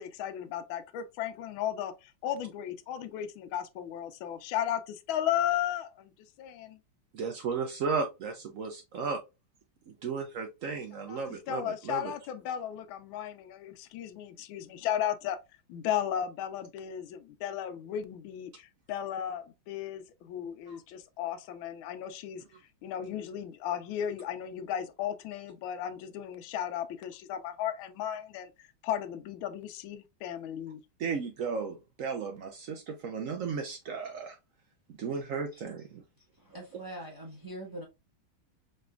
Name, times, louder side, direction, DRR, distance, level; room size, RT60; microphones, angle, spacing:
voice 1, 0.0-6.1 6.4-6.8 10.9-11.2 11.5-15.4 15.7-22.4 22.8-30.8, left 10 dB, 80° left, 1.3 m, -35 dB
voice 2, 7.1-9.2 9.9-12.1 20.7-20.8 31.0-34.4 35.0-36.0, right 5 dB, 90° right, 0.7 m, -34 dB
voice 3, 36.4-37.8, right 1 dB, 15° right, 0.7 m, -43 dB
5.1 x 3.2 x 2.3 m
omnidirectional pair, 2.3 m